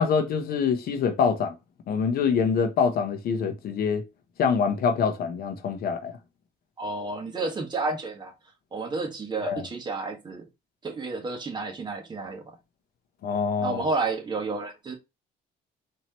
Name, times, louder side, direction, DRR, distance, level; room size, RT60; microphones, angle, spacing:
voice 1, 0.0-1.5 1.9-4.0 4.4-6.1 9.4-9.7 13.2-13.8, left 6 dB, 65° left, 0.9 m, -25 dB
voice 2, 6.8-8.3 8.7-10.4 10.8-12.5 13.6-15.0, right 3 dB, 25° right, 1.3 m, -31 dB
4.4 x 2.9 x 3.0 m
cardioid pair, 110°, 17 cm